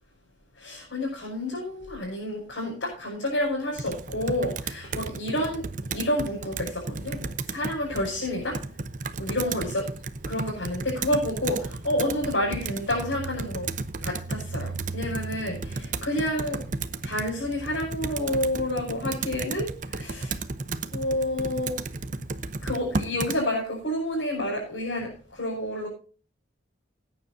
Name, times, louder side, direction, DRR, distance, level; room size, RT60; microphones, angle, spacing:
voice 1, 0.6-8.6 9.2-9.9 10.3-13.7 14.0-16.6 17.0-20.4 20.9-21.8 22.6-25.9, left 1 dB, 80° left, -4 dB, 6.1 m, -29 dB
Computer keyboard, 3.8-23.4, right 3 dB, 45° right, 0.7 m, -34 dB
19.5 x 9.6 x 2.7 m, 0.37 s
head